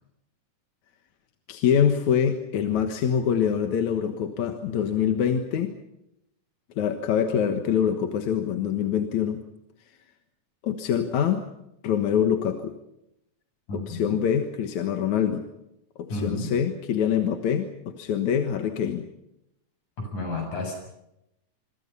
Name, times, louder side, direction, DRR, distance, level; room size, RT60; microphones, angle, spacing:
voice 1, 1.5-5.7 6.8-9.4 10.6-11.5 11.8-12.7 13.7-15.5 16.0-17.7 18.0-19.1, left 8 dB, 70° left, 6 dB, 2.8 m, -24 dB
voice 2, 13.7-14.2 16.1-16.5 20.0-20.7, left 2 dB, 90° left, 4 dB, 8.7 m, -31 dB
27.0 x 24.0 x 5.6 m, 0.84 s
omnidirectional pair, 3.4 m